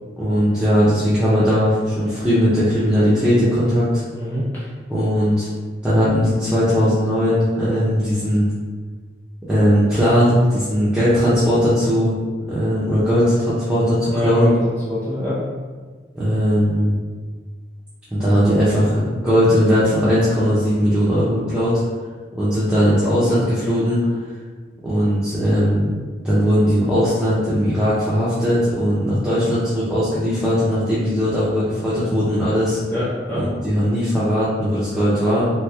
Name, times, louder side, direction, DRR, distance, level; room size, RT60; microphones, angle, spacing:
voice 1, 0.2-4.0 4.9-5.5 5.8-8.5 9.5-12.1 12.5-14.5 16.1-17.0 18.1-21.8 22.4-24.1 24.8-25.9 26.2-32.8 33.3-35.5, equal, 5° right, -11 dB, 0.5 m, -18 dB
voice 2, 4.1-4.7 14.1-15.4 32.9-33.4, left 1 dB, 10° left, -10 dB, 1.3 m, -25 dB
3.1 x 3.1 x 2.3 m, 1.5 s
head